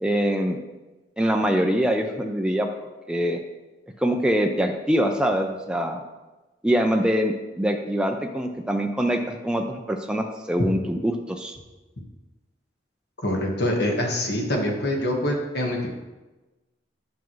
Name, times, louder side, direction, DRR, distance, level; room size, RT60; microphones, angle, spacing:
voice 1, 0.0-0.6 1.2-2.7 3.1-3.4 4.0-6.0 6.6-11.6, equal, 5° right, 3 dB, 0.4 m, -24 dB
voice 2, 13.2-15.9, left 1 dB, 60° left, 1 dB, 1.4 m, -25 dB
9.2 x 6.0 x 3.1 m, 1.1 s
head